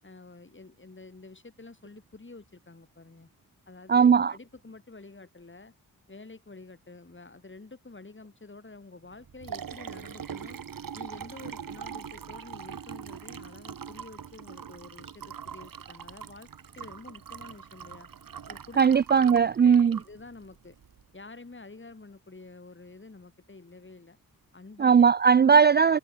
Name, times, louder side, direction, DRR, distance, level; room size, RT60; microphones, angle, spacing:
voice 1, 0.0-3.3 3.7-5.7 6.1-10.6 10.9-16.5 16.8-18.1 18.5-18.9 19.2-20.8 21.1-24.2 24.5-25.1, left 3 dB, 30° left, 7.3 m, -48 dB
voice 2, 3.9-4.3 18.8-20.0 24.8-26.0, right 6 dB, 30° right, 0.4 m, -19 dB
Liquid, 9.1-21.0, right 8 dB, 65° right, 2.1 m, -42 dB
cardioid pair, 55°, 36 cm